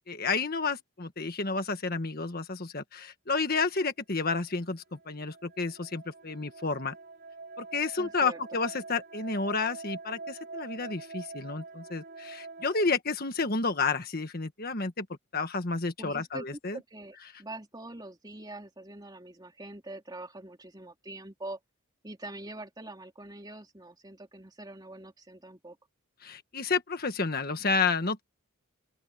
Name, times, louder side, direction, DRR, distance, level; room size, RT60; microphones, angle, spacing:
voice 1, 0.1-6.9 7.6-15.1 15.3-16.8 26.2-28.2, left 4 dB, 45° left, 1.6 m, -31 dB
sound 1, 4.6-12.9, right 3 dB, 55° right, 2.5 m, -45 dB
voice 2, 8.0-8.6 16.0-21.6 22.0-25.8, right 2 dB, 20° right, 3.3 m, -44 dB
open air
head